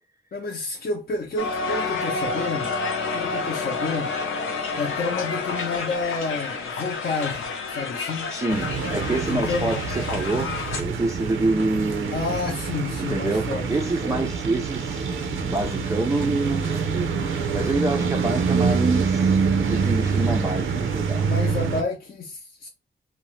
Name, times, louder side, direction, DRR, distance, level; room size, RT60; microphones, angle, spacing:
voice 1, 0.3-2.8 3.1-4.2 4.8-8.4 9.3-9.7 12.1-14.3 21.2-22.7, left 3 dB, 45° left, 0.6 m, -30 dB
Crowd, 1.4-10.8, left 4 dB, 90° left, 0.7 m, -29 dB
voice 2, 8.3-12.4 13.0-21.3, right 2 dB, 15° right, 0.4 m, -27 dB
sound 1, 8.5-21.8, right 5 dB, 80° right, 0.6 m, -25 dB
2.7 x 2.1 x 3.1 m
wide cardioid pair, 145°, 20 cm